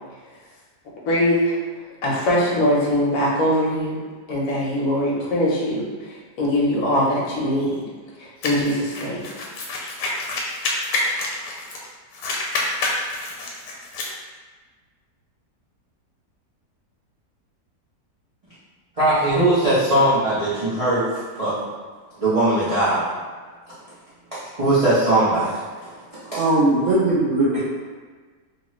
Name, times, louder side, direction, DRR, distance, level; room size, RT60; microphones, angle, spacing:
voice 1, 1.0-1.5 2.0-3.9 4.3-7.9 8.2-9.3, equal, 60° left, -4 dB, 1.0 m, -22 dB
sound 1, 8.4-11.9 12.1-14.1, left 2 dB, 85° left, 1.3 m, -27 dB
voice 2, 19.0-21.0 21.3-21.5 22.2-23.0 24.3-25.6 26.3-26.4, right 1 dB, 40° right, -13 dB, 0.5 m, -19 dB
voice 3, 26.4-27.6, right 2 dB, 75° right, -7 dB, 0.6 m, -19 dB
2.9 x 2.4 x 3.0 m, 1.4 s
omnidirectional pair, 1.8 m